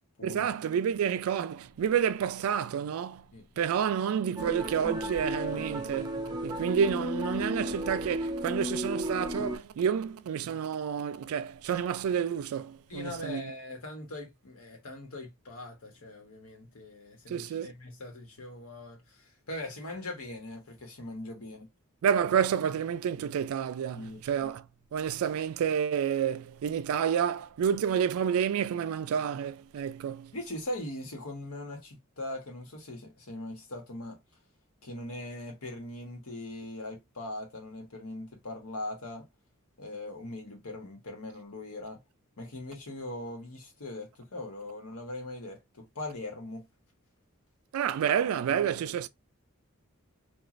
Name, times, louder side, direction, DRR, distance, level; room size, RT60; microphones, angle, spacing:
voice 1, 0.2-3.3 3.6-13.4 17.3-17.7 22.0-24.6 24.9-30.3 47.7-49.1, right 8 dB, 80° right, 0.3 m, -29 dB
sound 1, 4.4-9.6, equal, 20° right, 0.5 m, -34 dB
voice 2, 12.9-21.7 23.9-24.2 30.3-34.2 34.8-39.3 39.8-42.0 42.4-46.7, left 1 dB, 85° left, 1.2 m, -41 dB
3.0 x 2.4 x 2.5 m
head